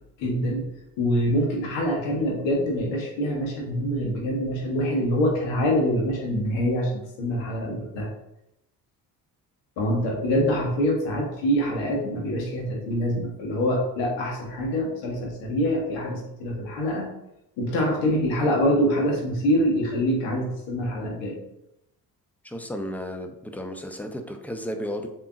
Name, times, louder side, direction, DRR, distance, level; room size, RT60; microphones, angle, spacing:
voice 1, 0.2-0.7 1.0-8.1 9.8-17.1 17.6-21.4, equal, 60° left, -1 dB, 1.3 m, -25 dB
voice 2, 22.4-25.1, equal, 5° left, 6 dB, 0.6 m, -33 dB
7.0 x 2.9 x 2.4 m, 0.84 s
figure-of-eight pair, 45°, 49 cm